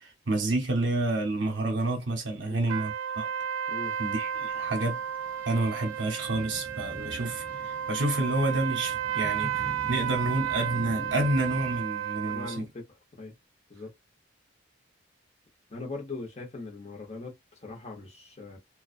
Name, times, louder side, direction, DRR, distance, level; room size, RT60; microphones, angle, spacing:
voice 1, 0.0-3.3 4.0-5.0 5.5-12.6, right 2 dB, 60° right, 0.8 m, -29 dB
sound 1, 2.7-12.6, right 9 dB, 80° right, 0.3 m, -33 dB
sound 2, 3.8-11.8, left 1 dB, 5° left, 0.4 m, -45 dB
voice 2, 12.3-12.9 13.2-13.3 13.7-13.9 15.7-18.6, left 3 dB, 30° left, 0.9 m, -40 dB
2.4 x 2.3 x 2.4 m
head